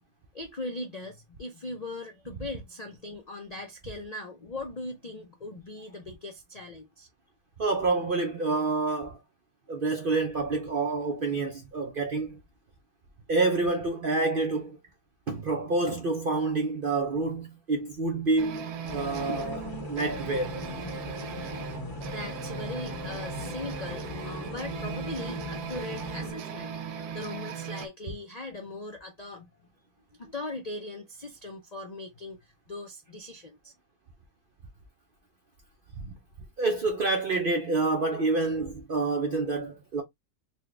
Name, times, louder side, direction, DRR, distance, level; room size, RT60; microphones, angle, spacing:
voice 1, 0.3-7.1 22.0-29.7 30.2-33.7, left 2 dB, 65° left, 0.4 m, -40 dB
voice 2, 7.6-9.2 9.7-12.4 13.3-14.8 15.3-20.6 36.0-36.1 36.6-40.0, right 3 dB, 55° right, 0.6 m, -28 dB
sound 1, 18.4-27.9, right 6 dB, 80° right, 1.3 m, -38 dB
sound 2, 18.8-26.3, left 2 dB, 15° left, 1.0 m, -39 dB
4.3 x 2.3 x 3.2 m
omnidirectional pair, 1.7 m